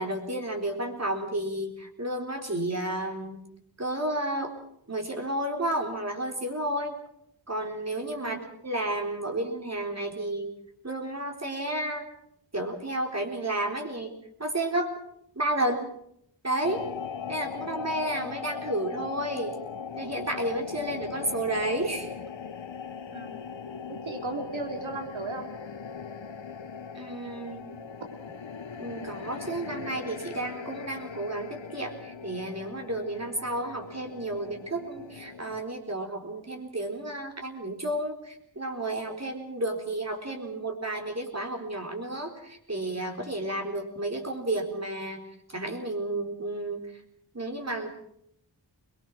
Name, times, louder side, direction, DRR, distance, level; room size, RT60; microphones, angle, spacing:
voice 1, 0.0-3.4 3.8-4.5 4.9-7.0 7.5-10.5 10.8-12.1 12.5-14.1 14.4-14.9 15.3-15.9 16.4-16.8 17.3-19.6 19.9-22.1 26.9-27.7 28.8-45.2 45.5-46.8 47.3-47.9, right 1 dB, 35° right, 3 dB, 4.0 m, -31 dB
sound 1, 16.6-35.6, left 6 dB, 75° left, 1.1 m, -40 dB
voice 2, 23.9-25.5, right 2 dB, 85° right, 4 dB, 3.4 m, -35 dB
23.0 x 21.5 x 6.2 m, 0.74 s
wide cardioid pair, 80°, 46 cm